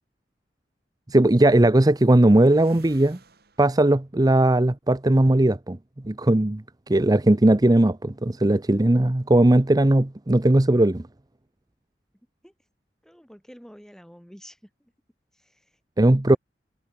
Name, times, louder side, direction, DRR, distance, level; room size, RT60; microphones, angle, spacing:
voice 1, 1.1-3.2 3.6-5.8 6.0-11.0 16.0-16.4, right 1 dB, 20° right, 0.7 m, -18 dB
sound 1, 1.3-4.0, right 3 dB, 65° right, 7.2 m, -54 dB
voice 2, 13.0-14.9 15.3-16.4, equal, 5° left, 7.0 m, -49 dB
head